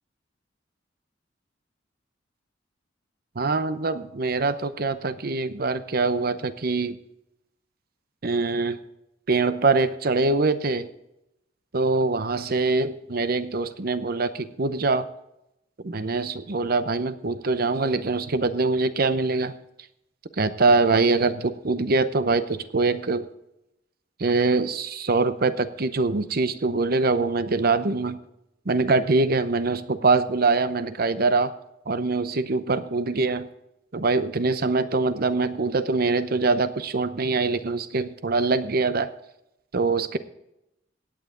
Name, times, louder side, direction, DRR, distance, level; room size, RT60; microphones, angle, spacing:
voice 1, 3.4-7.0 8.2-8.8 9.3-10.9 11.7-15.1 15.8-19.5 20.4-23.2 24.2-28.2 28.7-31.5 31.9-33.5 33.9-39.1 39.7-40.2, right 3 dB, 55° right, 12 dB, 0.7 m, -23 dB
16.5 x 9.2 x 3.8 m, 0.86 s
head